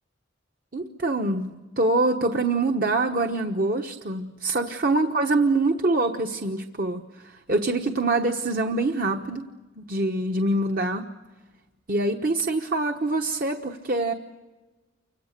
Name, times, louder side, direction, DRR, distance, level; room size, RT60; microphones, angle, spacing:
voice 1, 0.7-9.5 9.8-11.1 11.9-14.1, right 2 dB, 50° right, 4 dB, 1.2 m, -25 dB
30.0 x 26.0 x 6.7 m, 1.2 s
head